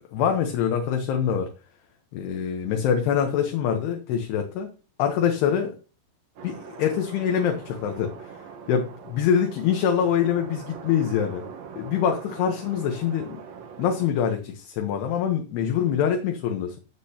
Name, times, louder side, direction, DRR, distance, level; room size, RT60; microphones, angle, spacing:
voice 1, 0.1-1.5 2.1-4.7 5.0-5.8 6.4-8.3 8.7-11.5 11.8-13.4 13.8-16.8, left 8 dB, 75° left, 4 dB, 3.1 m, -24 dB
sound 1, 6.4-14.1, right 6 dB, 70° right, 1.6 m, -42 dB
13.0 x 7.7 x 2.9 m, 0.33 s
omnidirectional pair, 4.9 m